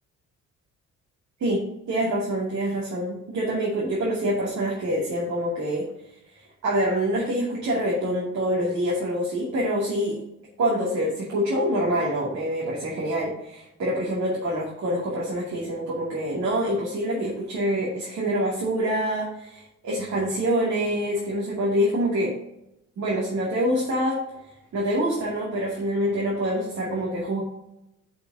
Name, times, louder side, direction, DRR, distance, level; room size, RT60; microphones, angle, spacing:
voice 1, 1.9-5.9 6.6-10.2 10.6-22.3 23.0-24.2 24.7-27.4, equal, 65° right, -5 dB, 2.6 m, -26 dB
9.8 x 5.4 x 2.7 m, 0.86 s
cardioid pair, 90°, 30 cm